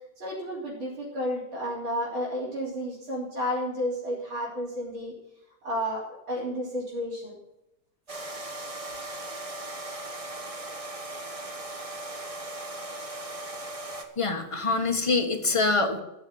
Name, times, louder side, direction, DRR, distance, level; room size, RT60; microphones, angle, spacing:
voice 1, 0.2-5.1 5.6-7.4, equal, 85° right, -7 dB, 4.5 m, -31 dB
sound 1, 8.1-14.0, right 2 dB, 20° right, 1.1 m, -38 dB
voice 2, 14.2-16.0, left 3 dB, 15° left, 3 dB, 1.5 m, -25 dB
14.5 x 6.5 x 9.5 m, 0.91 s
omnidirectional pair, 2.1 m